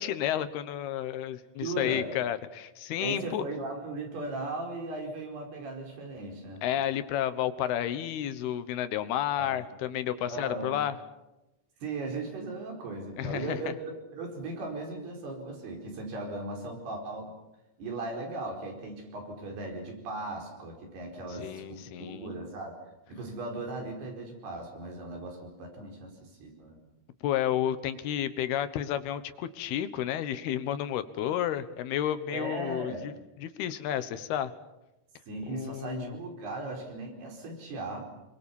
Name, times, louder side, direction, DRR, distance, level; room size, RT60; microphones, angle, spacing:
voice 1, 0.0-3.4 6.6-11.0 13.2-13.7 21.3-22.3 27.2-33.1 33.4-34.5 35.5-36.2, left 11 dB, 80° left, 12 dB, 3.1 m, -31 dB
voice 2, 1.6-2.1 3.0-6.6 9.4-9.6 10.3-10.8 11.8-17.3 17.8-22.7 23.1-26.8 32.3-33.1 35.3-38.0, right 2 dB, 80° right, 2 dB, 6.8 m, -37 dB
28.0 x 22.5 x 7.2 m, 0.96 s
omnidirectional pair, 4.5 m